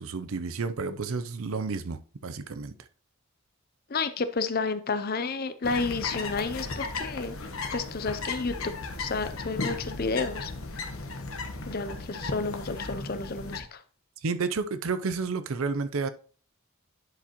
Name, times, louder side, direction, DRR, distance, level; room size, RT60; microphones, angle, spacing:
voice 1, 0.0-2.7 14.2-16.1, right 4 dB, 70° right, 0.6 m, -31 dB
voice 2, 3.9-7.4 7.7-8.7 9.0-10.5 11.7-13.8, left 4 dB, 45° left, 0.6 m, -31 dB
sound 1, 5.6-13.6, left 3 dB, 70° left, 1.1 m, -35 dB
10.5 x 4.9 x 3.0 m
head